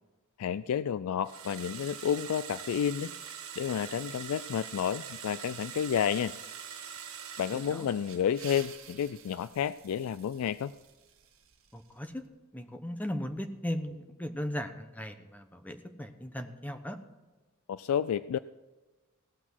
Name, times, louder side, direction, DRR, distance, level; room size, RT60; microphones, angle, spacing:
voice 1, 0.4-3.1 3.6-6.3 7.4-10.7 17.7-18.4, left 8 dB, 80° left, 14 dB, 0.3 m, -30 dB
sound 1, 1.2-8.6, right 8 dB, 85° right, 1.7 m, -44 dB
voice 2, 7.5-7.9 11.7-12.2 12.5-17.0, equal, 10° left, 6 dB, 0.9 m, -37 dB
sound 2, 8.0-12.2, right 8 dB, 70° right, 1.5 m, -52 dB
17.5 x 6.0 x 6.0 m, 1.2 s
head